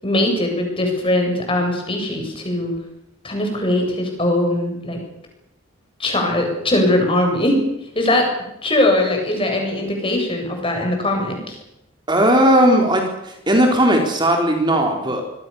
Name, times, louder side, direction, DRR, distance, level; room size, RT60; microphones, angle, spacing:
voice 1, 0.0-2.7 3.2-5.0 6.0-7.5 7.9-8.3 8.6-11.6, left 1 dB, 25° left, 3 dB, 7.9 m, -20 dB
voice 2, 12.1-15.3, right 1 dB, 20° right, 2 dB, 3.9 m, -17 dB
26.5 x 22.0 x 7.1 m, 0.82 s
head